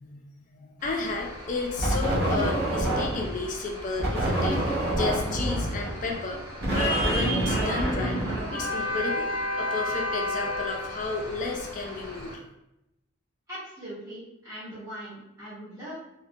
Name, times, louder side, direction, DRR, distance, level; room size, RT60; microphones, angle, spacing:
voice 1, 0.0-6.4 6.7-12.4, left 3 dB, 35° left, 1 dB, 0.3 m, -32 dB
sound 1, 0.8-12.4, left 1 dB, 90° right, 0.6 m, -35 dB
sound 2, 1.8-3.4 4.0-9.1, right 1 dB, 50° right, 0.6 m, -27 dB
voice 2, 13.5-16.1, equal, 15° right, -12 dB, 0.7 m, -40 dB
2.3 x 2.1 x 2.6 m, 0.87 s
head